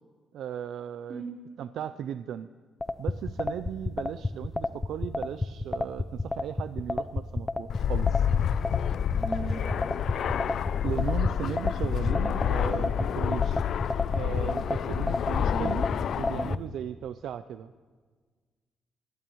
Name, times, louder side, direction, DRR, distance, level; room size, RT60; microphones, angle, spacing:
voice 1, 0.3-1.2 1.6-2.5 3.0-8.3 10.8-13.6 14.1-15.9 16.2-17.7, right 9 dB, 80° right, 12 dB, 0.4 m, -36 dB
sound 1, 2.8-16.6, left 2 dB, 20° left, 0.6 m, -29 dB
Fixed-wing aircraft airplane, 7.7-16.5, left 9 dB, 65° left, 0.4 m, -28 dB
voice 2, 9.1-10.0 15.3-15.8, right 3 dB, 55° right, -1 dB, 3.7 m, -38 dB
24.0 x 17.5 x 3.1 m, 1.5 s
cardioid pair, 95°, 0 cm